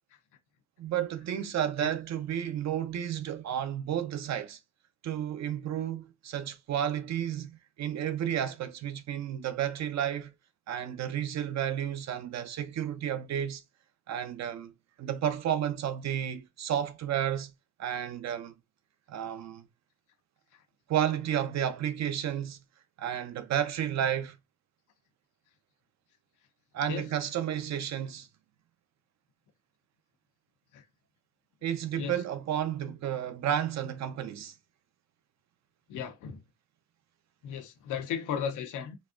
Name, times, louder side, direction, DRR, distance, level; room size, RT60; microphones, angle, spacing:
voice 1, 0.8-4.6 5.0-10.3 10.7-13.6 14.1-14.7 15.0-17.5 17.8-18.5 19.1-19.7 20.9-22.6 23.0-24.4 26.7-28.3 31.6-34.5, right 10 dB, 60° right, 0.7 m, -32 dB
voice 2, 35.9-36.4 37.4-39.0, left 8 dB, 85° left, 0.9 m, -35 dB
4.0 x 2.4 x 2.5 m
cardioid pair, 90°, 30 cm